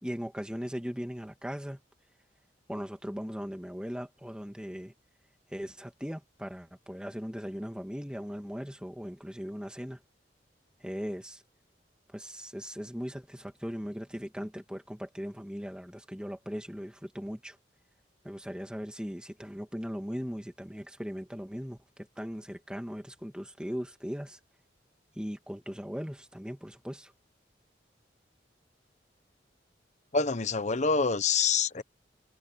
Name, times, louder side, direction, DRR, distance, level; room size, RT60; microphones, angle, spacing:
voice 1, 0.0-1.8 2.7-4.9 5.5-10.0 10.8-11.4 12.1-17.6 18.2-21.8 22.2-24.4 25.2-27.1, equal, 5° right, 2.5 m, -38 dB
voice 2, 30.1-31.8, left 5 dB, 40° left, 1.0 m, -26 dB
head